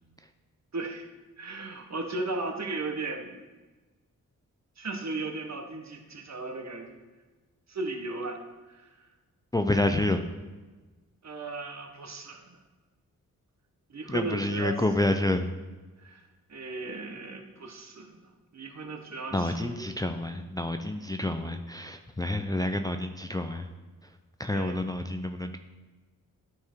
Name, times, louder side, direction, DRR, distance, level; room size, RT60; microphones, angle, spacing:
voice 1, 0.7-1.1 1.4-3.3 4.8-7.0 7.7-8.4 8.7-8.9 9.8-9.9 11.2-12.6 13.9-14.8 16.0-16.2 16.5-18.2 18.5-19.9 24.5-24.8, right 3 dB, 50° right, 4 dB, 1.3 m, -36 dB
voice 2, 9.5-10.2 14.1-15.5 19.3-23.7 24.4-25.6, left 1 dB, 10° left, 6 dB, 0.5 m, -28 dB
9.6 x 4.7 x 4.6 m, 1.3 s
supercardioid pair, 45°, 36 cm